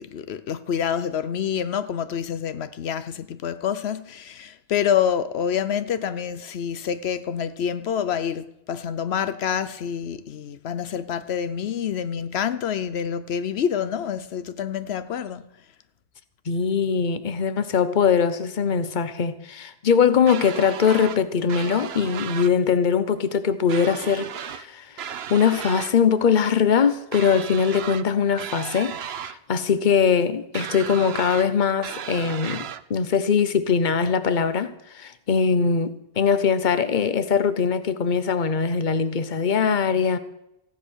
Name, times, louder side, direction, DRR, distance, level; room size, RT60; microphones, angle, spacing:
voice 1, 0.0-15.5, left 8 dB, 90° left, 1.0 m, -27 dB
voice 2, 16.5-40.2, left 6 dB, 50° left, 1.0 m, -22 dB
sound 1, 20.3-21.2 21.5-22.5 23.7-24.7 25.0-25.9 27.1-28.1 28.4-29.4 30.5-31.5 31.8-32.8, right 9 dB, 80° right, 1.0 m, -35 dB
15.0 x 10.0 x 6.4 m
omnidirectional pair, 1.0 m